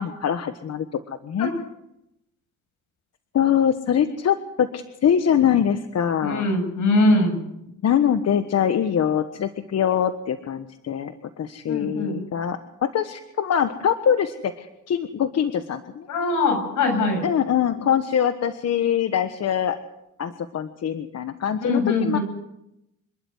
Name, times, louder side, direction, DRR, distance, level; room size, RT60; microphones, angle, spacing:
voice 1, 0.0-1.5 3.3-6.5 7.8-16.1 17.2-19.8 20.2-22.2, left 8 dB, 55° left, 9 dB, 1.4 m, -23 dB
voice 2, 6.2-7.4 11.7-12.2 16.1-17.2 21.6-22.2, left 2 dB, 80° left, 4 dB, 7.7 m, -22 dB
27.0 x 11.5 x 9.6 m, 0.84 s
cardioid pair, 90°, 30 cm